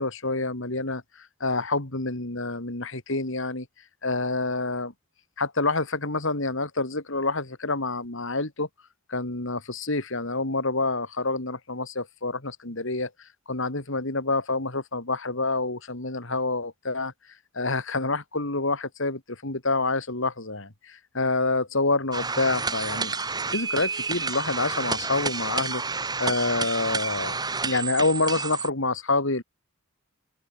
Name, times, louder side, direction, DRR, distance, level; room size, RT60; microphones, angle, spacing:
voice 1, 0.0-3.7 4.0-4.9 5.4-8.7 9.1-17.1 17.5-23.1 23.5-25.8 26.2-29.4, left 3 dB, 60° left, 2.7 m, -27 dB
sound 1, 22.1-28.7, right 4 dB, 20° right, 3.8 m, -30 dB
open air
head